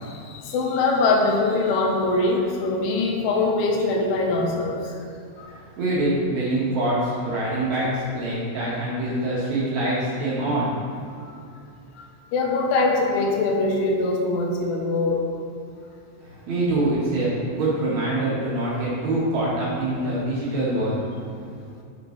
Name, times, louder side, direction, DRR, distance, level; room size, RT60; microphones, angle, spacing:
voice 1, 0.0-4.9 5.4-5.6 11.2-11.4 12.0-12.1 12.3-15.2, left 3 dB, 80° left, 0 dB, 3.4 m, -23 dB
voice 2, 5.4-10.7 16.2-21.0, right 1 dB, 55° right, -8 dB, 2.1 m, -25 dB
13.5 x 5.4 x 3.3 m, 2.4 s
omnidirectional pair, 5.5 m